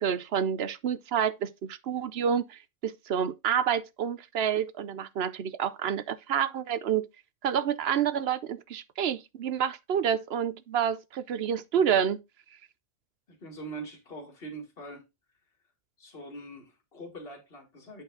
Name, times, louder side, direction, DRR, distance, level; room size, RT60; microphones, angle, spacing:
voice 1, 0.0-7.1 7.4-12.2, right 8 dB, 65° right, 0.8 m, -28 dB
voice 2, 13.3-15.1 16.0-18.0, right 2 dB, 55° left, 2.1 m, -43 dB
8.4 x 4.6 x 3.8 m
omnidirectional pair, 1.2 m